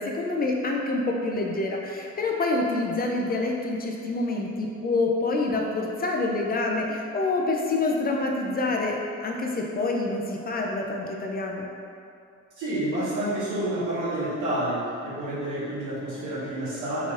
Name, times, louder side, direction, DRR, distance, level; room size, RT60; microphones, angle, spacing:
voice 1, 0.0-11.6, left 2 dB, 30° left, 0 dB, 0.4 m, -27 dB
voice 2, 12.6-17.1, right 1 dB, 85° right, -9 dB, 1.3 m, -29 dB
3.8 x 3.1 x 2.5 m, 2.5 s
cardioid pair, 90°, 30 cm